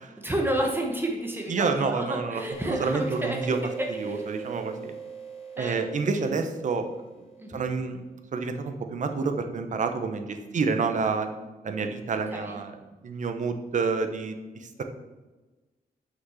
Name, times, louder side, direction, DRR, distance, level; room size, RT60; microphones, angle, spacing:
voice 1, 0.2-4.9 5.6-5.9 6.1-6.2 7.4-7.7 12.3-12.6, right 1 dB, 10° right, 1 dB, 1.1 m, -31 dB
voice 2, 1.5-3.6 4.0-4.9 5.6-6.8 7.5-8.0 8.3-11.3 11.6-12.7 13.0-14.4 14.6-14.8, right 4 dB, 50° right, 7 dB, 0.8 m, -28 dB
sound 1, 2.5-7.8, right 6 dB, 35° left, 1.6 m, -39 dB
6.1 x 6.0 x 5.7 m, 1.2 s
wide cardioid pair, 150°, 17 cm